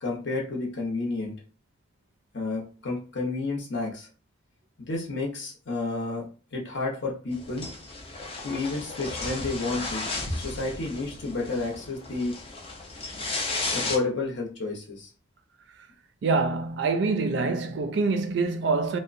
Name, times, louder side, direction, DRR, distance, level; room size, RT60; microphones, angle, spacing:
voice 1, 0.0-1.4 2.3-4.1 4.8-7.7 8.4-12.4 13.7-15.1, left 3 dB, 60° left, 0.7 m, -31 dB
sound 1, 7.3-14.0, left 3 dB, 30° left, 0.4 m, -34 dB
voice 2, 16.2-19.0, right 4 dB, 60° right, 0.4 m, -25 dB
2.8 x 2.1 x 2.5 m
head